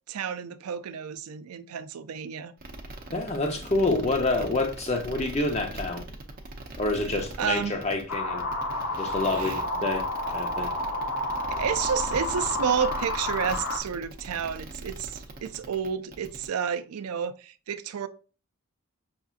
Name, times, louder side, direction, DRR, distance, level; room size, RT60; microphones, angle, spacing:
voice 1, 0.1-2.5 7.4-7.8 9.3-9.6 11.5-18.1, right 7 dB, 90° right, 0.4 m, -30 dB
sound 1, 2.6-16.5, right 2 dB, 40° right, 0.6 m, -41 dB
voice 2, 3.1-6.1 6.8-8.5 9.0-10.7, left 2 dB, 30° left, 0.6 m, -28 dB
sound 2, 8.1-13.8, left 1 dB, 85° left, 0.9 m, -30 dB
5.7 x 2.6 x 2.4 m
head